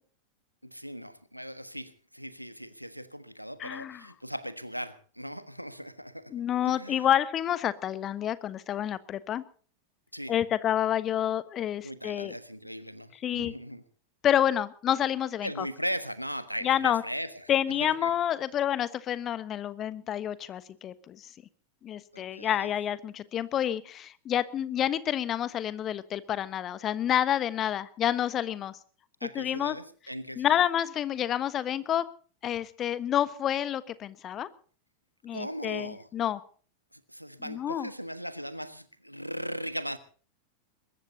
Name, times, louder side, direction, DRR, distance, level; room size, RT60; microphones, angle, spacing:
voice 1, 0.6-6.3 6.6-7.1 10.1-10.4 11.8-13.8 15.4-18.1 22.1-22.7 29.2-30.6 35.3-36.1 36.9-40.0, equal, 90° right, 12 dB, 1.4 m, -38 dB
voice 2, 3.6-4.0 6.3-9.4 10.3-12.3 13.2-13.5 14.2-15.7 16.6-17.0 17.5-21.2 21.8-28.8 29.3-29.7 30.4-32.0 32.4-34.5 35.2-36.4 37.5-37.9, left 10 dB, 30° left, 15 dB, 1.2 m, -28 dB
22.0 x 21.0 x 2.8 m, 0.43 s
figure-of-eight pair, 90°, 0 cm